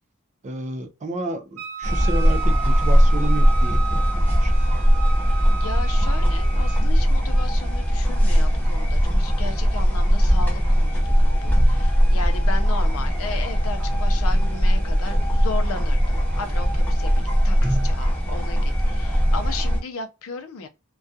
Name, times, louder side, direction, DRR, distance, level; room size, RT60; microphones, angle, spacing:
voice 1, 0.4-4.5, right 2 dB, 35° right, 0.4 m, -31 dB
Wind instrument woodwind instrument, 1.6-6.9, right 6 dB, 75° right, 1.0 m, -33 dB
sound 1, 1.8-19.8, equal, 5° left, 0.7 m, -19 dB
voice 2, 5.5-20.7, left 4 dB, 70° left, 0.5 m, -35 dB
2.3 x 2.2 x 2.6 m
head